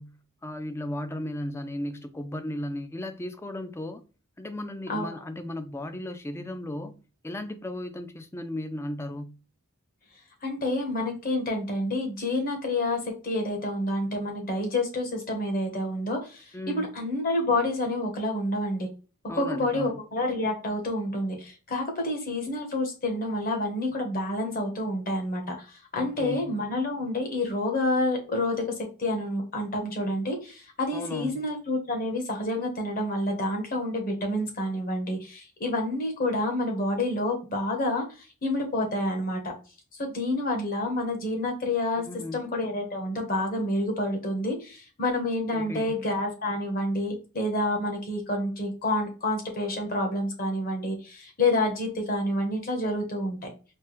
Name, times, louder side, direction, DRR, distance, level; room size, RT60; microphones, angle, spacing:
voice 1, 0.0-4.0 4.4-7.0 7.2-9.4 16.5-16.9 19.3-20.0 25.9-26.6 30.9-31.4 42.0-42.4 45.5-45.9, left 1 dB, 10° left, 0.3 m, -35 dB
voice 2, 10.4-18.9 19.3-28.6 29.0-39.5 40.0-42.0 42.3-53.4, left 1 dB, 40° left, 1.1 m, -28 dB
4.4 x 2.2 x 3.2 m
head